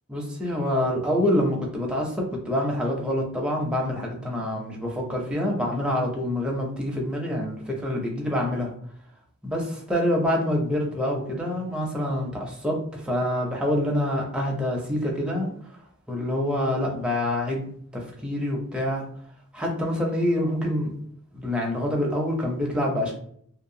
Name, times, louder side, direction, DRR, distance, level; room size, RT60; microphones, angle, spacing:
voice 1, 0.1-8.7 9.4-15.5 16.1-17.7 17.9-19.0 19.5-20.9 21.3-23.1, left 1 dB, 5° right, -2 dB, 0.5 m, -26 dB
2.7 x 2.2 x 2.6 m, 0.63 s
head